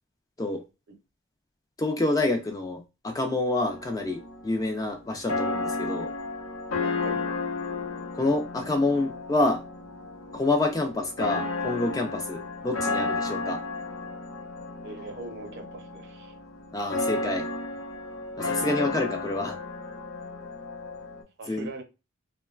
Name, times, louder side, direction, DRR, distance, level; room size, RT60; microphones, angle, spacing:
voice 1, 1.8-6.1 8.1-9.6 10.3-13.6 16.7-17.5 18.4-19.6 21.5-21.7, left 2 dB, 15° left, 0.3 m, -27 dB
sound 1, 3.6-21.2, left 3 dB, 80° left, 0.7 m, -33 dB
voice 2, 14.8-16.3 21.4-21.8, right 3 dB, 55° right, 0.6 m, -40 dB
3.0 x 2.1 x 2.3 m
head